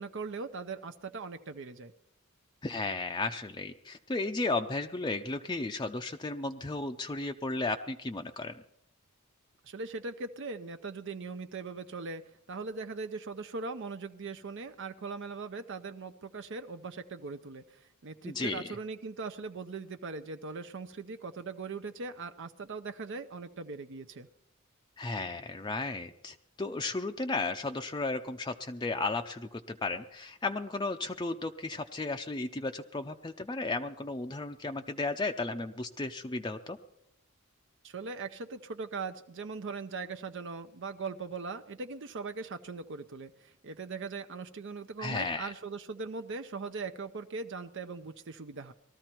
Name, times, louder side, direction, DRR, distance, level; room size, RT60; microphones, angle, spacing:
voice 1, 0.0-1.9 9.6-12.2 12.5-24.3 37.8-48.7, right 4 dB, 60° right, 8 dB, 0.6 m, -40 dB
voice 2, 2.6-8.5 18.2-18.8 25.0-36.8 45.0-45.5, left 3 dB, 20° left, 5 dB, 0.5 m, -34 dB
19.5 x 13.5 x 4.5 m, 0.81 s
head